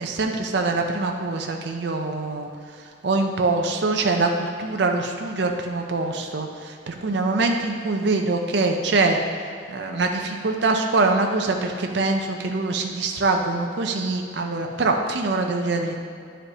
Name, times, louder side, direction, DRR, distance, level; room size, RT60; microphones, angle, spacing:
voice 1, 0.0-2.5 3.0-9.2 9.7-16.0, right 3 dB, 55° right, 3 dB, 0.5 m, -24 dB
10.0 x 5.0 x 2.8 m, 2.3 s
head